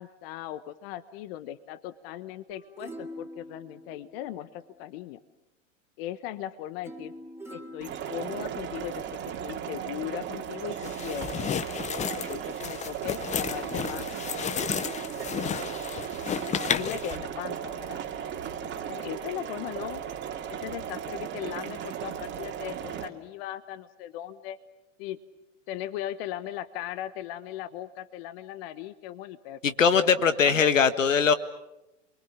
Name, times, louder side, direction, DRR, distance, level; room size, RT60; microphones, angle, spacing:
voice 1, 0.0-5.2 6.0-7.1 7.5-9.0 9.4-11.3 11.8-14.1 15.9-18.0 18.9-20.0 20.5-24.6 25.0-25.2 25.7-29.6 30.4-30.7, left 12 dB, 50° left, 14 dB, 1.3 m, -38 dB
sound 1, 2.5-4.8 6.8-8.9 9.4-9.5, equal, 5° right, 3.6 m, -45 dB
sound 2, 7.8-23.1, right 9 dB, 30° right, 2.4 m, -36 dB
sound 3, 10.8-17.2, left 8 dB, 20° left, 0.8 m, -32 dB
voice 2, 29.6-31.3, left 6 dB, 80° left, 12 dB, 1.7 m, -21 dB
28.5 x 23.0 x 7.4 m, 0.94 s
hypercardioid pair, 100°, 38 cm